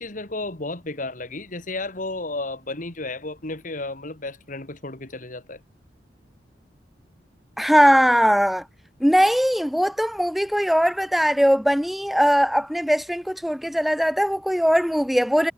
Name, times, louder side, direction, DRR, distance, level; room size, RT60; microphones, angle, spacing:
voice 1, 0.0-5.6, left 2 dB, 50° left, 2.6 m, -33 dB
voice 2, 7.6-8.6 9.0-15.5, equal, ahead, 0.6 m, -20 dB
head